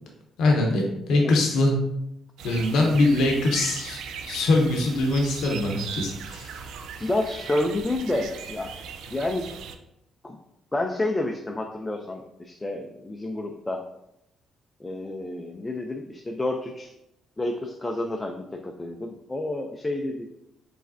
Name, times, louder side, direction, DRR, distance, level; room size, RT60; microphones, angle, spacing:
voice 1, 0.4-1.7 2.4-4.0 4.3-6.6, left 2 dB, 80° left, 0 dB, 0.7 m, -22 dB
sound 1, 2.4-9.8, right 6 dB, 80° right, 0.4 m, -39 dB
voice 2, 7.0-8.7 9.1-9.5 10.2-10.4 10.7-13.8 14.8-16.9 17.4-20.3, left 2 dB, 20° left, 2 dB, 0.4 m, -29 dB
4.8 x 3.2 x 2.6 m, 0.83 s
cardioid pair, 90°, 0 cm